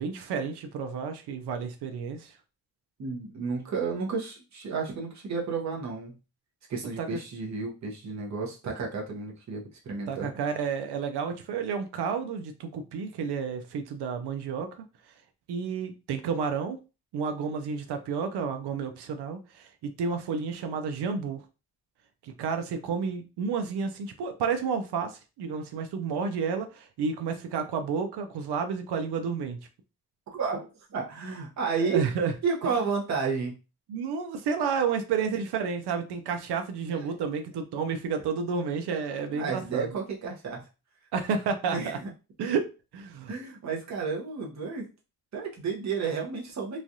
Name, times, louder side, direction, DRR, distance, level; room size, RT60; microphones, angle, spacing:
voice 1, 0.0-2.4 7.0-7.2 10.1-14.7 15.5-16.8 17.1-21.4 22.2-29.6 31.8-32.3 33.9-39.9 41.1-42.0 42.4-42.7 42.9-43.3, right 6 dB, 85° right, 0.6 m, -31 dB
voice 2, 3.0-6.1 6.7-10.3 30.3-32.0 32.4-33.5 36.9-37.1 39.3-40.6 41.7-42.1 43.3-44.9 45.3-46.8, right 5 dB, 45° right, 0.8 m, -32 dB
3.1 x 2.3 x 2.6 m
wide cardioid pair, 175°, 39 cm